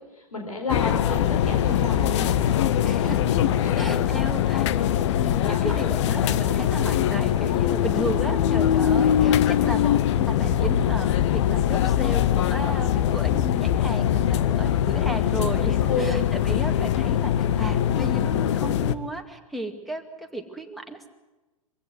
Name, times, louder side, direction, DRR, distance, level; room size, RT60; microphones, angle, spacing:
voice 1, 0.1-2.6 3.4-4.2 5.4-5.8 15.8-16.2, left 2 dB, 80° left, 3 dB, 4.3 m, -32 dB
sound 1, 0.7-19.0, left 10 dB, 55° left, 1.0 m, -22 dB
voice 2, 2.8-3.4 3.8-4.7 5.2-9.9 10.2-21.1, right 1 dB, ahead, 8 dB, 2.3 m, -34 dB
23.5 x 16.0 x 9.5 m, 1.1 s
figure-of-eight pair, 105°, 18 cm